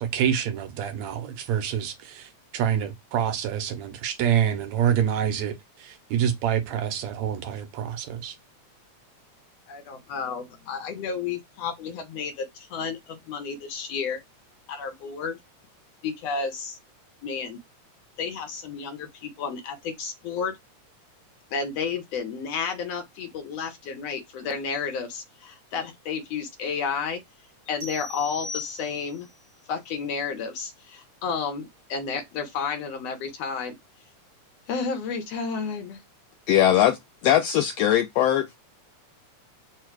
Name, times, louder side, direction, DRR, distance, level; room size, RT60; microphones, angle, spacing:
voice 1, 0.0-8.4, right 9 dB, 75° right, 2.0 m, -27 dB
voice 2, 9.7-14.2 14.7-15.4 16.0-16.8 17.2-17.6 18.2-20.6 21.5-27.2 27.7-29.3 29.7-33.7 34.7-36.0, left 5 dB, 65° left, 1.8 m, -31 dB
sound 1, 27.8-29.3, left 3 dB, 30° right, 1.3 m, -38 dB
voice 3, 36.5-37.0 37.2-38.5, left 11 dB, 90° left, 1.4 m, -20 dB
4.8 x 2.3 x 4.5 m
omnidirectional pair, 3.4 m